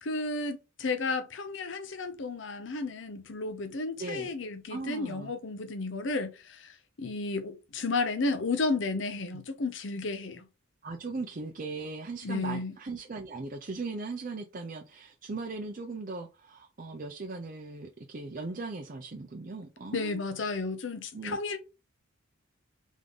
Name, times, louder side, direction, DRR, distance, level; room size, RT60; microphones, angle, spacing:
voice 1, 0.0-10.5 12.2-12.7 19.9-21.6, left 3 dB, 60° left, 0.7 m, -33 dB
voice 2, 4.0-4.3 4.7-5.3 10.8-20.2 21.1-21.6, right 3 dB, 40° right, 0.5 m, -38 dB
3.7 x 3.6 x 3.7 m
head